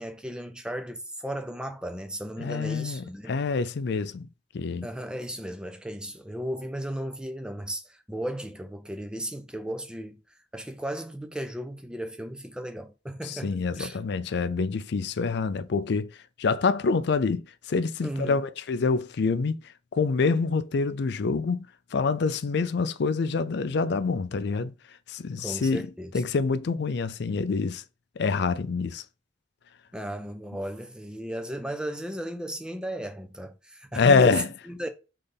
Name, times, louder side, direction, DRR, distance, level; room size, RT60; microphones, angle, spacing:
voice 1, 0.0-3.4 4.8-10.2 10.5-14.0 18.0-18.5 25.4-26.1 29.9-34.9, right 1 dB, 5° right, 0.5 m, -35 dB
voice 2, 2.4-4.3 4.5-4.9 13.2-16.1 16.4-19.6 19.9-21.7 21.9-24.7 25.1-27.8 28.2-29.0 33.9-34.5, left 4 dB, 60° left, 0.4 m, -26 dB
3.5 x 3.3 x 4.0 m
head